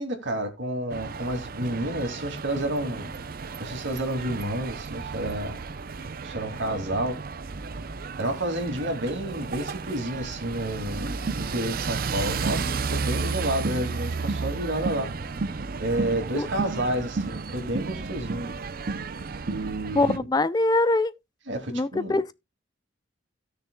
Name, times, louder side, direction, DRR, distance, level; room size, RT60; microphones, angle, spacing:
voice 1, 0.0-3.1 3.6-5.6 6.2-7.2 8.2-11.1 11.3-15.1 15.8-18.5 19.5-20.2 21.5-22.2, right 1 dB, 80° right, 2.3 m, -30 dB
sound 1, 0.9-20.2, right 4 dB, 50° right, 0.5 m, -33 dB
voice 2, 19.9-21.1 21.7-22.3, left 2 dB, 20° left, 0.4 m, -23 dB
17.0 x 6.5 x 2.2 m
head